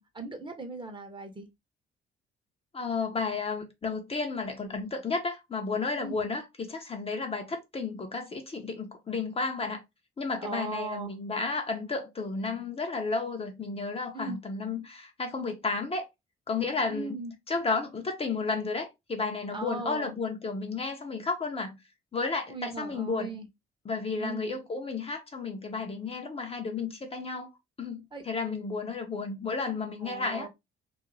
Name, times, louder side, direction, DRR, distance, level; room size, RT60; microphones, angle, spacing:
voice 1, 0.0-1.5 6.0-6.2 10.4-11.1 14.1-14.4 16.9-17.3 19.5-20.1 22.5-23.5 24.2-24.5 28.1-28.3 30.0-30.5, right 3 dB, 25° right, 0.7 m, -38 dB
voice 2, 2.7-9.8 10.2-16.1 16.5-17.2 17.5-21.8 22.1-23.4 23.8-27.5 27.8-30.5, left 4 dB, 30° left, 0.5 m, -32 dB
2.4 x 2.0 x 3.0 m
cardioid pair, 90°, 20 cm